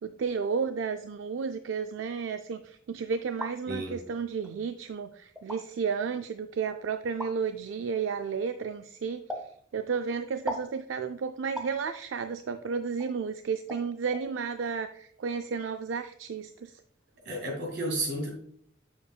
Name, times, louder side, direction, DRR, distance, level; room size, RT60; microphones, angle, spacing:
voice 1, 0.0-9.2 9.7-16.8, right 5 dB, 80° right, 8 dB, 0.4 m, -32 dB
sound 1, 3.1-3.6 4.4-4.5 5.4-5.6 7.2-7.3 9.3-9.5 10.5-10.7 11.6-11.8 13.0-13.1 13.7-13.8 14.1-14.3, equal, 5° right, 0.8 m, -36 dB
voice 2, 3.7-4.0 17.3-18.3, right 1 dB, 60° right, 0 dB, 2.2 m, -32 dB
6.9 x 6.8 x 2.3 m, 0.64 s
head